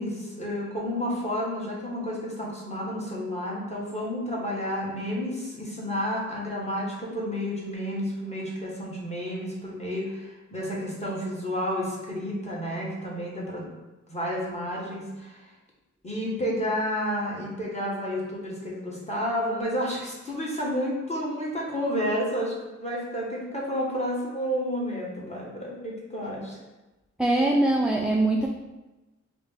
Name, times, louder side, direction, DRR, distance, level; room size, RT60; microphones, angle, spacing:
voice 1, 0.0-13.7 14.1-15.5 16.0-22.5 22.8-26.6, equal, 20° left, -5 dB, 1.2 m, -31 dB
voice 2, 27.2-28.5, right 2 dB, 5° right, -1 dB, 0.3 m, -22 dB
5.0 x 2.0 x 3.6 m, 1.1 s
wide cardioid pair, 75°, 30 cm